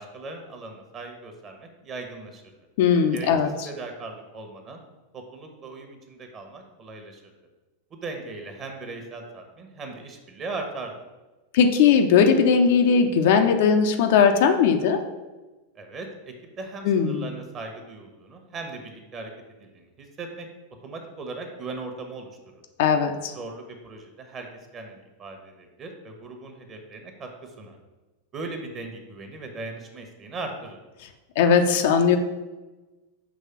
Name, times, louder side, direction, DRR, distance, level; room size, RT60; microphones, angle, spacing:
voice 1, 0.0-2.5 3.1-3.3 3.6-4.8 5.1-7.2 7.9-11.0 15.7-19.3 19.6-20.5 20.8-22.3 23.3-24.5 24.7-27.8 28.3-30.8, right 3 dB, 30° right, 4 dB, 1.1 m, -38 dB
voice 2, 2.8-3.5 11.5-15.0 16.8-17.3 22.8-23.3 31.4-32.2, left 6 dB, 50° left, 5 dB, 0.6 m, -19 dB
6.2 x 3.2 x 5.8 m, 1.1 s
figure-of-eight pair, 90°, 0 cm